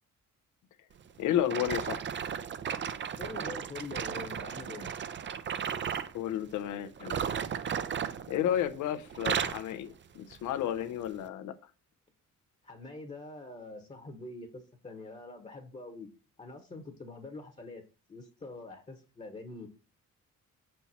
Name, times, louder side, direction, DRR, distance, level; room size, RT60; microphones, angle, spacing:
voice 1, 1.2-2.2 6.1-7.2 8.3-11.5, left 11 dB, 85° left, 0.7 m, -32 dB
sound 1, 1.5-6.1 7.0-8.8 9.1-9.7 10.3-10.5 11.2-11.3, right 7 dB, 40° right, 0.5 m, -35 dB
voice 2, 3.2-4.9 12.6-16.1 16.4-17.8 18.1-19.7, left 3 dB, 25° left, 1.1 m, -44 dB
5.7 x 4.4 x 4.2 m
cardioid pair, 90°, 30 cm